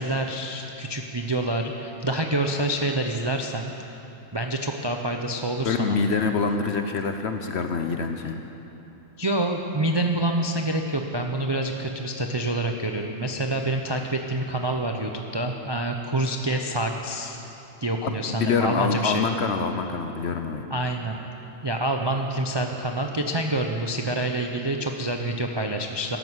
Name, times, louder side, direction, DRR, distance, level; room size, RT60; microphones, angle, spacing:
voice 1, 0.0-3.9 4.3-6.0 9.2-17.4 17.8-19.3 20.7-21.2 21.6-26.2, right 1 dB, 45° right, 3 dB, 0.3 m, -27 dB
voice 2, 5.6-8.4 18.0-20.6, left 5 dB, 55° left, 6 dB, 0.8 m, -25 dB
12.5 x 11.5 x 8.0 m, 3.0 s
omnidirectional pair, 1.6 m